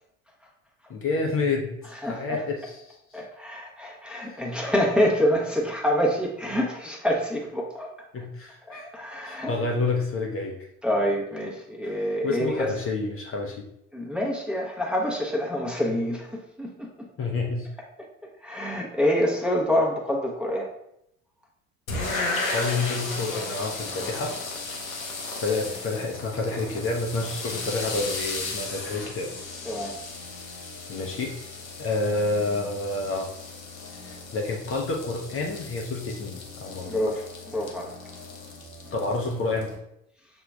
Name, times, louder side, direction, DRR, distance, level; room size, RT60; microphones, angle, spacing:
voice 1, 0.9-3.2 4.3-4.4 8.1-8.9 9.2-10.6 11.8-12.0 12.2-13.7 15.9-16.0 17.2-17.7 22.5-24.4 25.4-29.3 30.9-31.3 31.8-33.3 34.0-37.0 38.9-39.7, left 3 dB, 35° left, 0 dB, 0.7 m, -29 dB
voice 2, 2.0-2.4 3.1-7.9 8.7-9.5 10.8-12.7 13.9-17.1 18.4-20.7 29.6-29.9 36.9-37.9, equal, ahead, -2 dB, 0.9 m, -26 dB
sound 1, 21.9-39.8, left 3 dB, 90° left, 0.8 m, -35 dB
6.8 x 2.9 x 2.3 m, 0.79 s
figure-of-eight pair, 60°, 40 cm